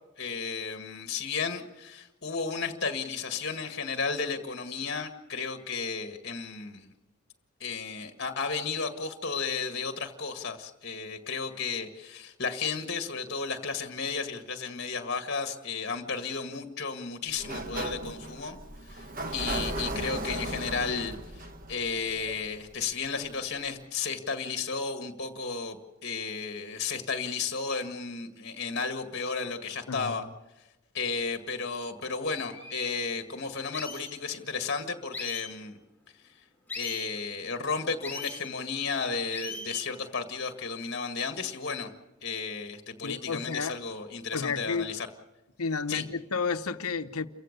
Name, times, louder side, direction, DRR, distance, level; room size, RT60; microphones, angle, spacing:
voice 1, 0.2-6.9 7.6-18.6 18.9-19.1 19.3-30.2 30.9-35.8 36.8-41.9 42.2-45.1 45.9-46.0, left 5 dB, 50° left, 1.8 m, -33 dB
Sliding door, 17.3-23.0, right 1 dB, 40° right, 1.4 m, -36 dB
sound 1, 32.0-32.1 32.5-32.9 33.7-34.1 35.1-35.5 36.7-37.1 38.0-38.4 39.3-39.9, left 3 dB, 10° left, 3.1 m, -38 dB
voice 2, 43.0-43.8 44.3-44.9 45.6-47.3, left 5 dB, 85° left, 0.9 m, -31 dB
29.0 x 16.0 x 6.7 m
head